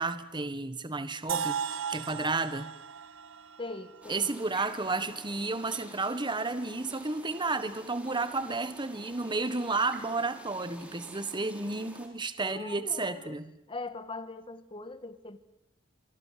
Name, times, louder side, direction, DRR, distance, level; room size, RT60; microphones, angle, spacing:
voice 1, 0.0-2.7 4.1-13.5, right 3 dB, 20° right, 1.4 m, -32 dB
sound 1, 1.3-5.2, right 7 dB, 65° right, 1.1 m, -37 dB
voice 2, 3.6-4.3 12.4-13.4 13.7-15.4, left 3 dB, 25° left, 1.5 m, -41 dB
sound 2, 4.0-12.1, right 1 dB, 5° right, 4.1 m, -49 dB
25.5 x 24.5 x 7.6 m
head